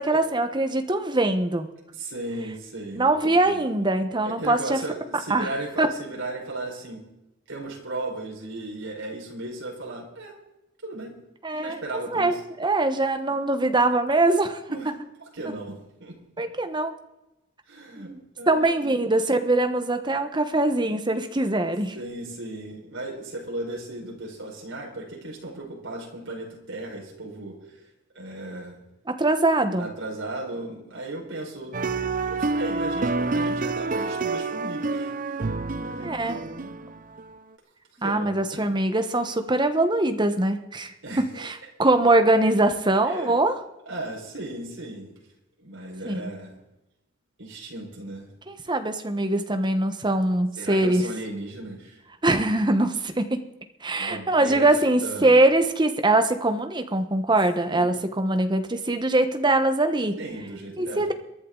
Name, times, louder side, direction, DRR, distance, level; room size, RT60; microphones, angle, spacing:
voice 1, 0.0-1.7 3.0-4.8 5.3-5.5 5.8-5.9 11.4-11.8 12.1-14.6 16.4-16.9 18.0-18.2 18.5-21.9 29.1-29.9 36.0-36.4 38.0-40.9 41.4-43.5 46.0-46.3 48.5-51.1 52.2-53.4 53.8-60.2 60.8-61.1, right 2 dB, 20° right, 7 dB, 1.1 m, -22 dB
voice 2, 1.9-3.8 4.2-7.0 7.5-10.3 10.8-11.2 11.5-12.4 13.3-13.4 14.7-14.9 15.3-15.8 16.0-16.2 17.7-19.1 21.9-27.8 28.2-28.8 29.8-31.8 32.2-35.1 35.7-36.9 38.0-38.7 41.0-41.5 43.0-43.4 43.9-45.1 45.6-46.6 47.4-48.3 50.6-52.0 53.9-54.7 55.0-55.4 57.7-57.9 60.2-61.0, right 2 dB, 70° right, -1 dB, 5.0 m, -36 dB
sound 1, 31.7-37.4, right 3 dB, 40° right, 0.6 m, -28 dB
22.5 x 11.0 x 3.9 m, 0.92 s
head